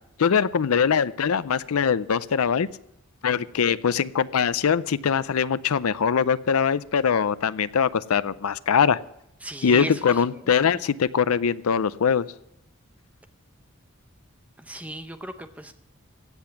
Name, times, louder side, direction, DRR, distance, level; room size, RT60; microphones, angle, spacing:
voice 1, 0.2-2.7 3.2-9.0 9.6-12.3, left 6 dB, 85° left, 17 dB, 0.5 m, -22 dB
voice 2, 9.4-10.4 14.6-15.7, right 1 dB, 5° right, 8 dB, 0.7 m, -36 dB
16.0 x 8.7 x 5.8 m, 0.81 s
head